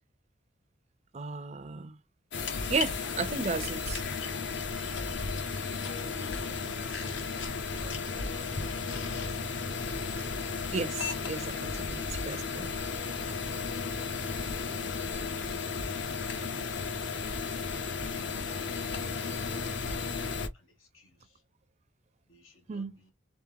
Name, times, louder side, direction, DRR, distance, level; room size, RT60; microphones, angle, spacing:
voice 1, 1.1-2.0 2.7-4.0 10.7-12.7 22.7-22.9, right 4 dB, 35° right, 0.4 m, -34 dB
sound 1, 2.3-20.5, left 5 dB, 65° left, 0.8 m, -34 dB
voice 2, 5.3-8.1 11.3-12.1 19.8-21.4 22.3-23.1, left 2 dB, 90° left, 1.7 m, -54 dB
3.6 x 3.5 x 3.4 m
head